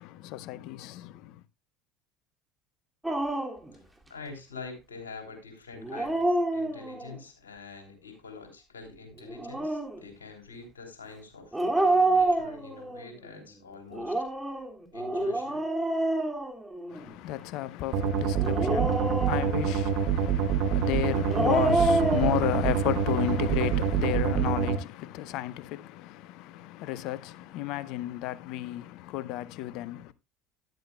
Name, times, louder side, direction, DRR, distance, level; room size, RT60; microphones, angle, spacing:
voice 1, 0.0-1.4 16.9-30.1, left 15 dB, 60° left, 0.6 m, -33 dB
Dog, 3.0-3.7 5.8-7.1 9.2-10.0 11.5-13.0 13.9-17.1 18.4-19.8 21.1-22.4, right 2 dB, 10° right, 2.3 m, -27 dB
voice 2, 4.1-14.2 14.9-15.6, left 4 dB, 85° left, 3.2 m, -45 dB
sound 1, 17.9-24.8, right 7 dB, 60° right, 1.1 m, -26 dB
13.0 x 10.5 x 2.2 m
hypercardioid pair, 70°, 0 cm